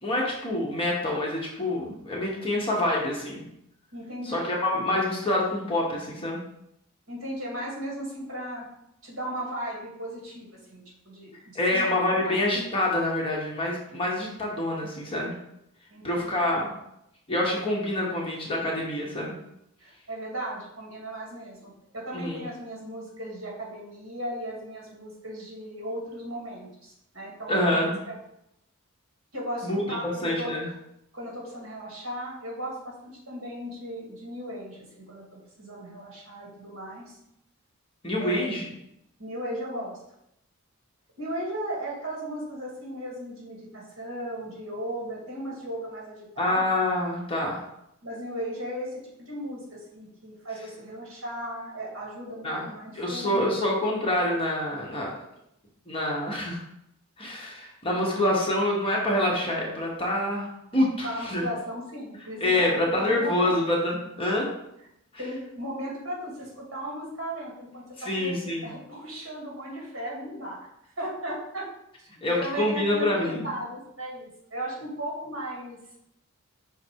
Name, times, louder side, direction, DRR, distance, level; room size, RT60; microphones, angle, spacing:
voice 1, 0.0-3.4 4.2-6.4 11.5-15.3 16.0-16.7 17.3-19.3 22.1-22.4 27.5-28.0 29.6-29.8 30.2-30.7 38.0-38.7 46.4-47.6 52.4-52.6 52.9-55.1 55.9-56.6 57.2-61.4 62.4-64.5 68.0-68.7 72.2-73.4, left 1 dB, 25° left, -3 dB, 1.1 m, -26 dB
voice 2, 3.9-4.5 7.1-8.7 9.0-12.4 15.9-16.5 19.8-28.1 29.3-30.6 31.1-35.2 35.6-37.1 38.2-38.5 39.2-40.0 41.2-46.7 48.0-53.5 61.0-62.7 63.0-63.6 65.2-68.4 68.6-70.7 71.0-71.7 72.0-75.8, right 1 dB, 60° right, -3 dB, 2.1 m, -36 dB
5.6 x 3.7 x 4.6 m, 0.80 s
head